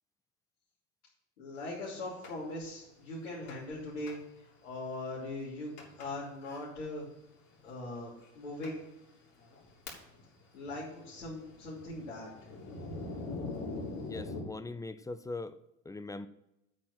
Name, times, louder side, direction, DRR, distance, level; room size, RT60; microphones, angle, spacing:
voice 1, 1.4-5.7 6.0-7.1 7.6-8.8 10.5-12.3, left 2 dB, 90° left, -8 dB, 3.2 m, -40 dB
Thunder, 2.2-2.3 3.5-3.8 4.1-4.2 4.8-4.9 5.8-6.1 6.4-6.6 7.5-7.6 8.2-8.3 8.6-8.8 9.3-10.3 10.6-14.4, left 3 dB, 50° left, 3.2 m, -42 dB
voice 2, 14.1-15.6 15.9-16.3, left 3 dB, 10° left, 13 dB, 0.3 m, -40 dB
8.7 x 4.4 x 7.3 m, 0.87 s
hypercardioid pair, 90°, 36 cm